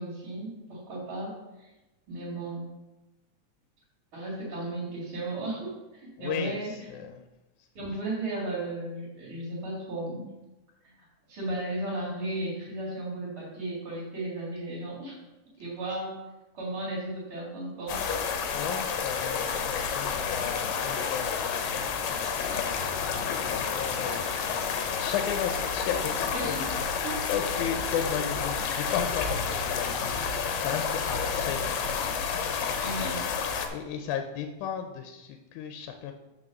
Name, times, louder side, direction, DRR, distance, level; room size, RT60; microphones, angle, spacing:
voice 1, 0.0-1.3 1.6-1.7 2.1-2.7 4.1-6.9 7.7-10.3 10.8-10.9 11.3-15.2 15.6-16.2 16.5-18.0 26.3-26.7 27.0-27.2 32.8-33.2, right 2 dB, 45° right, -8 dB, 3.0 m, -35 dB
voice 2, 6.2-7.2 7.9-8.0 18.5-32.1 32.4-33.2 33.7-36.1, left 8 dB, 90° left, 5 dB, 2.0 m, -35 dB
sound 1, 17.9-33.7, left 6 dB, 70° left, 1.9 m, -30 dB
6.1 x 4.7 x 6.5 m, 1.0 s
omnidirectional pair, 3.4 m